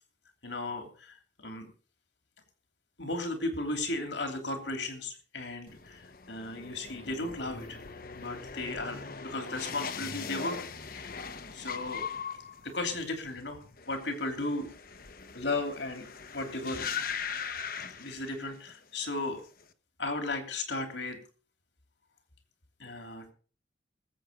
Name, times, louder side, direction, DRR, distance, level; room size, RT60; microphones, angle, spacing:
voice 1, 0.4-1.7 3.0-7.8 8.2-11.1 11.5-12.1 12.6-13.6 13.9-14.7 15.3-16.8 18.0-19.4 20.0-21.2 22.8-23.3, left 2 dB, 70° left, 6 dB, 3.1 m, -35 dB
sound 1, 5.7-18.8 19.0-19.6, left 6 dB, 50° left, 1.0 m, -40 dB
20.5 x 8.1 x 5.2 m, 0.40 s
head